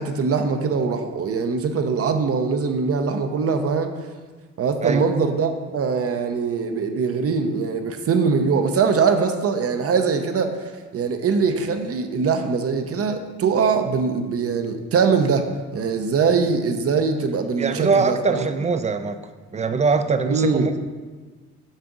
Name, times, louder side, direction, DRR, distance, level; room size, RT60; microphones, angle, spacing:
voice 1, 0.0-3.9 4.6-18.5 20.3-20.7, right 5 dB, 50° right, 7 dB, 0.8 m, -22 dB
voice 2, 17.6-19.2 19.5-20.8, right 4 dB, 25° right, 10 dB, 0.4 m, -22 dB
6.5 x 5.9 x 3.9 m, 1.4 s
cardioid pair, 90°, 30 cm